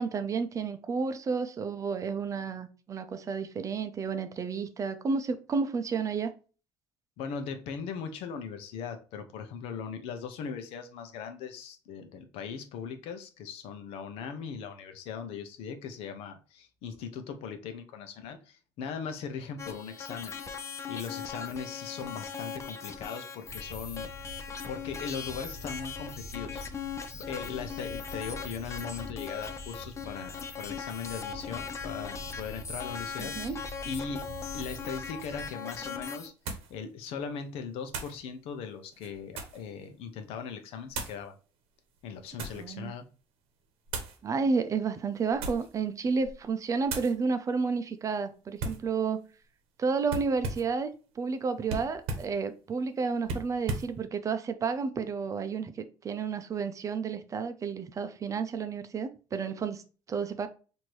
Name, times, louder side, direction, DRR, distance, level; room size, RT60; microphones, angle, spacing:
voice 1, 0.0-6.3 33.2-33.6 42.5-42.9 44.2-49.2 49.8-59.8 60.1-60.5, right 5 dB, 35° right, 0.5 m, -31 dB
voice 2, 7.2-20.3 20.6-26.6 27.1-33.6 33.8-34.2 34.5-36.3 36.7-41.3 42.0-43.0, left 6 dB, 80° left, 0.6 m, -39 dB
sound 1, 19.6-36.3, left 6 dB, 30° left, 0.5 m, -40 dB
sound 2, 23.4-35.5, equal, 10° right, 1.4 m, -46 dB
sound 3, 35.3-35.4 36.5-36.7 37.9-38.2 38.9-39.7 40.9-41.2 42.0-42.7 43.9-44.2 45.3-45.8 46.2-46.4 46.9-47.2 48.6-48.9 50.1-50.8 51.7-52.3 53.2-53.9, right 3 dB, 75° right, 0.9 m, -36 dB
4.4 x 2.7 x 3.0 m
cardioid pair, 110°, 10 cm